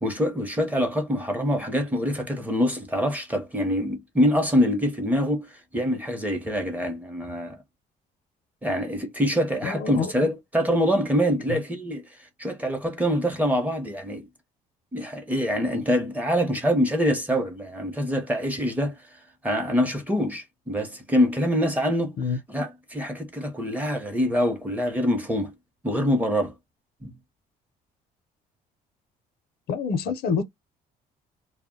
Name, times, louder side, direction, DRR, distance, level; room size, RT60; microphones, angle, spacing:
voice 1, 0.0-7.6 8.6-12.0 12.4-14.3 14.9-19.0 19.4-22.2 22.5-25.5 25.8-26.5 27.0-27.2, equal, 10° right, 0.7 m, -25 dB
voice 2, 9.6-10.3 11.5-11.6 22.2-22.4 29.7-30.4, left 5 dB, 65° left, 0.6 m, -27 dB
2.1 x 2.0 x 3.6 m
cardioid pair, 110°, 17 cm